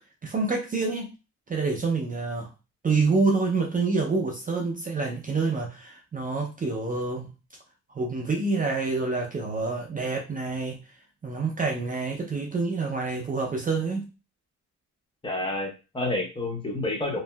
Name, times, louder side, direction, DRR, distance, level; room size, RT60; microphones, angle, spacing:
voice 1, 0.2-1.1 1.5-2.5 2.8-7.3 7.9-10.8 11.2-14.1, right 3 dB, 25° right, 1 dB, 0.5 m, -27 dB
voice 2, 15.2-17.2, left 2 dB, 15° left, 1 dB, 1.0 m, -29 dB
3.0 x 2.6 x 2.2 m, 0.31 s
cardioid pair, 90°, 30 cm